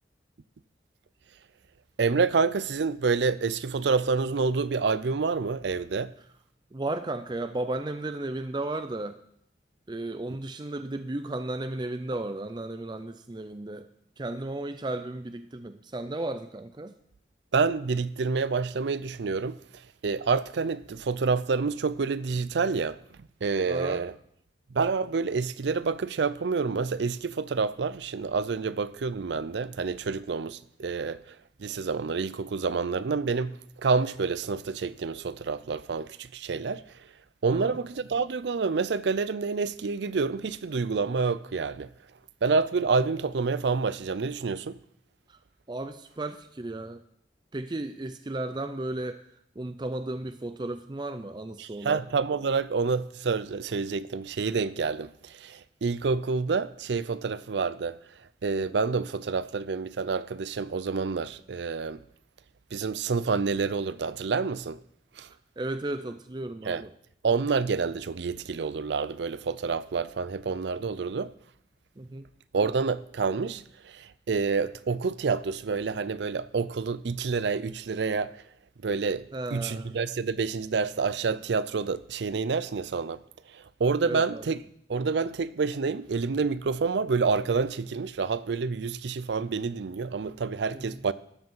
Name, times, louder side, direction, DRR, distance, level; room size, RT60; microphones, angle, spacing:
voice 1, 2.0-6.1 17.5-23.0 23.4-24.1 24.7-36.8 37.4-41.9 42.4-44.8 51.6-58.0 58.4-62.0 62.7-64.8 65.2-65.3 66.6-66.8 67.2-71.3 72.5-78.4 78.8-79.2 79.5-83.2 83.5-84.6 84.9-91.1, right 4 dB, 80° right, 0.5 m, -28 dB
voice 2, 6.7-9.2 9.9-13.9 14.2-17.0 23.7-24.0 37.5-37.8 45.3-45.4 45.7-47.0 47.5-49.2 49.6-52.0 65.6-66.9 72.0-72.3 79.3-80.0 84.0-84.6 90.7-91.0, right 2 dB, 25° right, 0.4 m, -34 dB
13.0 x 7.8 x 5.5 m
head